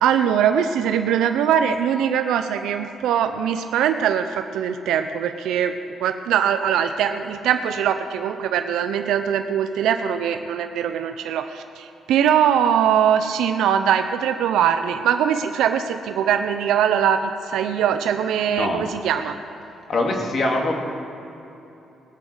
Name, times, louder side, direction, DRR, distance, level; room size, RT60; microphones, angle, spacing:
voice 1, 0.0-5.7 6.0-19.4, right 9 dB, 85° right, 7 dB, 0.6 m, -21 dB
voice 2, 19.9-20.7, left 2 dB, 50° left, 1 dB, 2.5 m, -22 dB
20.0 x 8.3 x 6.3 m, 2.9 s
cardioid pair, 90°, 0 cm